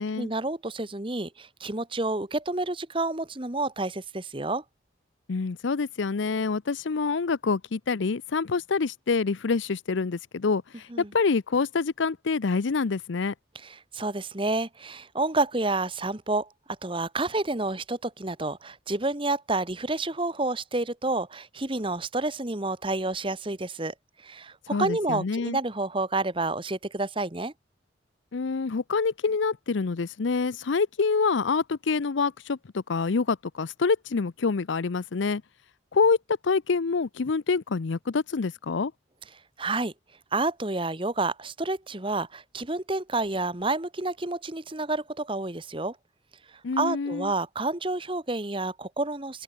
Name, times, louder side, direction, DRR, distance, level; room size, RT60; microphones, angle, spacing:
voice 1, 0.0-4.6 10.9-11.1 13.6-16.5 16.8-23.9 24.2-27.5 39.6-39.9 40.3-46.0 46.8-49.4, right 2 dB, 25° right, 1.5 m, -29 dB
voice 2, 5.3-13.3 24.7-25.6 28.3-35.4 35.9-36.2 36.4-38.9 46.6-47.3, left 4 dB, 80° left, 0.6 m, -26 dB
open air
head